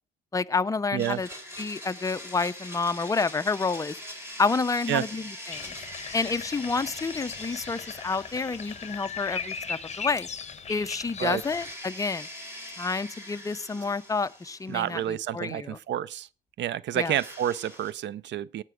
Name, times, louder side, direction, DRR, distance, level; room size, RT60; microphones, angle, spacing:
voice 1, 0.3-1.3 1.6-4.0 4.4-5.7 6.1-10.3 10.7-12.3 12.8-15.8 16.9-17.2, left 4 dB, 15° left, 0.5 m, -29 dB
Domestic sounds home sounds, 1.0-10.1 10.4-10.5 11.3-15.2 17.0-17.9, left 1 dB, 10° right, 3.9 m, -43 dB
sound 1, 5.5-11.7, left 6 dB, 35° left, 1.2 m, -38 dB
voice 2, 14.7-16.3 16.6-18.6, right 11 dB, 65° right, 0.5 m, -29 dB
17.5 x 6.0 x 4.9 m
cardioid pair, 90°, 20 cm